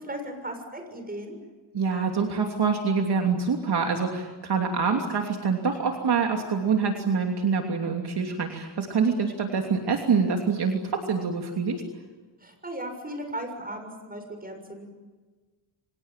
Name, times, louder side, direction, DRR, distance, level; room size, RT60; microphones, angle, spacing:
voice 1, 0.0-1.4 12.4-14.9, right 1 dB, 20° right, 6 dB, 7.0 m, -36 dB
voice 2, 1.7-11.8, right 5 dB, 55° right, 2 dB, 3.1 m, -25 dB
29.5 x 25.5 x 7.6 m, 1.3 s
wide cardioid pair, 130°, 47 cm